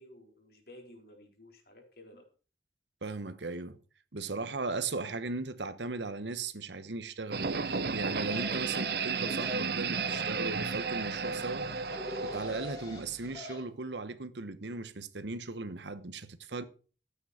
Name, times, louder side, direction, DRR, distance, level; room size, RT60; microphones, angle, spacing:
voice 1, 0.0-2.3, left 1 dB, 55° left, 3.7 m, -54 dB
voice 2, 3.0-3.8 4.1-7.5 7.9-11.7 12.2-16.6, right 3 dB, 80° right, 1.1 m, -37 dB
sound 1, 7.3-13.4, right 5 dB, 60° right, 0.9 m, -33 dB
sound 2, 8.2-13.6, left 1 dB, 25° left, 3.3 m, -46 dB
13.0 x 9.2 x 4.9 m
head